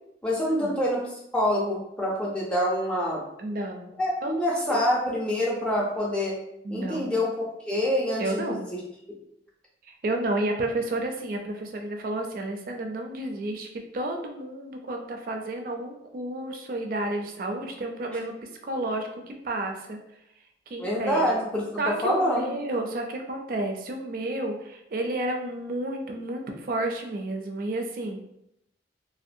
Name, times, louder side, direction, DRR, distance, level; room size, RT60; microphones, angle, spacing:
voice 1, 0.2-3.2 4.0-6.4 6.7-8.8 20.8-22.5, left 1 dB, 5° left, -4 dB, 0.5 m, -26 dB
voice 2, 3.4-3.9 4.2-4.8 6.6-7.1 8.2-8.6 9.9-13.7 13.9-18.4 18.6-20.0 20.7-21.2 21.8-28.2, right 2 dB, 50° right, 3 dB, 0.3 m, -31 dB
2.5 x 2.1 x 2.6 m, 0.80 s
head